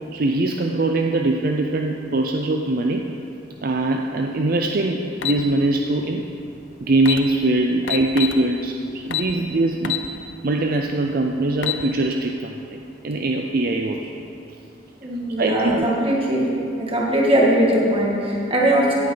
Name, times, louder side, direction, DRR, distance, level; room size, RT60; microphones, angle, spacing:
voice 1, 0.1-3.1 3.6-6.2 6.8-10.0 10.4-14.1 15.4-15.9, right 2 dB, 50° right, 3 dB, 0.5 m, -22 dB
sound 1, 5.2-5.4 6.6-6.7 7.0-7.2 7.9-8.4 9.1-9.3 9.8-10.1 10.5-10.6 11.4-11.8, left 11 dB, 85° left, 0.7 m, -25 dB
voice 2, 15.0-16.5 16.8-18.9, right 1 dB, 30° right, -4 dB, 2.0 m, -20 dB
17.0 x 8.4 x 3.9 m, 2.7 s
head